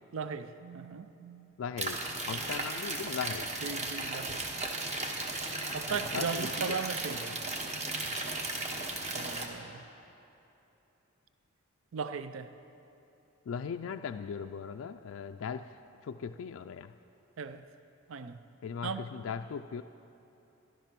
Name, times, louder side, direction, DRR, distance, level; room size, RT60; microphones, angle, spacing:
voice 1, 0.1-1.5 3.6-4.4 5.7-7.4 9.1-9.8 11.9-12.5 17.4-17.6 18.1-18.4 18.8-19.1, right 5 dB, 70° right, 11 dB, 0.5 m, -37 dB
voice 2, 1.6-3.5 5.9-6.8 13.5-16.9 18.6-19.8, left 6 dB, 70° left, 7 dB, 0.3 m, -39 dB
sound 1, 1.8-9.5, right 2 dB, 35° right, 1.1 m, -35 dB
14.0 x 11.5 x 5.9 m, 2.9 s
head